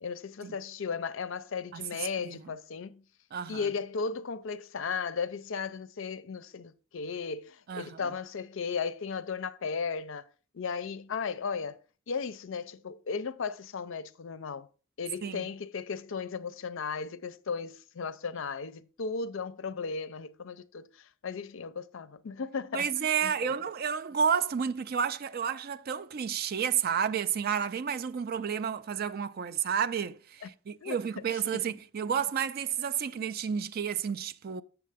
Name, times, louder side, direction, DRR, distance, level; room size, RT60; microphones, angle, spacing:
voice 1, 0.0-3.0 3.5-10.3 10.5-11.8 12.1-14.7 15.0-22.9 23.2-23.5 30.4-30.5 30.8-31.0 31.4-31.7, left 5 dB, 65° left, 0.5 m, -36 dB
voice 2, 3.3-3.6 7.7-8.0 15.2-15.5 22.7-34.6, right 7 dB, 45° right, 0.4 m, -31 dB
7.5 x 7.0 x 3.5 m
head